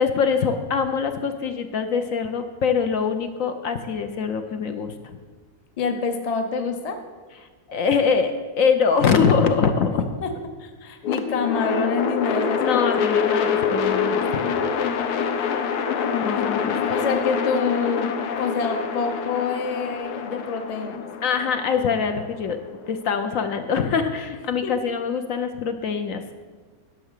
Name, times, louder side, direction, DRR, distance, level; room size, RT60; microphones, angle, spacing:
voice 1, 0.0-5.2 7.7-10.0 12.6-14.4 16.1-16.8 21.2-22.6 22.9-26.4, left 6 dB, 65° left, 7 dB, 1.0 m, -23 dB
voice 2, 5.8-7.0 10.2-10.3 10.6-13.1 16.1-16.2 16.6-18.1 18.4-21.0 24.6-24.7, left 5 dB, 35° left, 6 dB, 0.7 m, -27 dB
sound 1, 11.0-23.2, left 6 dB, 85° left, 1.3 m, -26 dB
11.5 x 6.3 x 6.5 m, 1.4 s
omnidirectional pair, 1.6 m